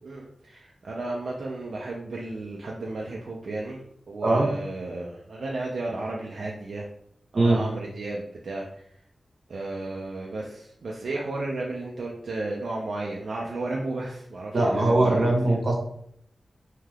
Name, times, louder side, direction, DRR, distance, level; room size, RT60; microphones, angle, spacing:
voice 1, 0.0-6.9 7.3-8.8 9.5-15.6, right 2 dB, 75° right, -2 dB, 0.4 m, -33 dB
voice 2, 14.5-15.7, right 2 dB, 50° right, 0 dB, 0.8 m, -21 dB
2.7 x 2.3 x 3.4 m, 0.69 s
wide cardioid pair, 110°, 0 cm